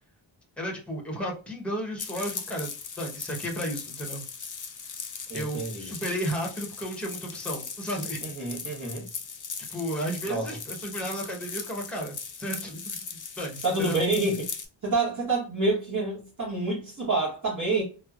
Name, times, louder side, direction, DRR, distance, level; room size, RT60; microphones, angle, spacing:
voice 1, 0.6-2.7 3.0-4.2 5.3-8.2 9.7-13.0 13.4-14.0, equal, ahead, 0.9 m, -33 dB
sound 1, 2.0-14.7, left 5 dB, 40° left, 0.5 m, -39 dB
voice 2, 5.3-5.9 8.2-9.0 10.2-10.5 13.6-14.5 14.8-17.8, right 2 dB, 40° right, 1.2 m, -28 dB
3.1 x 2.0 x 2.3 m
wide cardioid pair, 95°, 48 cm